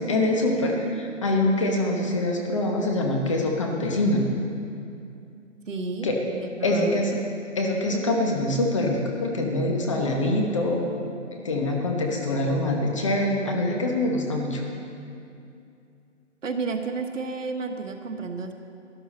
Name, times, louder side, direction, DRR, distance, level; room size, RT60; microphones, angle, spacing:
voice 1, 0.0-4.2 6.0-6.1 6.6-7.2 7.5-10.9 11.4-14.6, left 1 dB, 25° left, 1 dB, 1.0 m, -24 dB
voice 2, 5.7-7.0 16.4-18.5, right 4 dB, 85° right, 5 dB, 1.4 m, -32 dB
12.5 x 12.0 x 4.2 m, 2.6 s
hypercardioid pair, 170°, 37 cm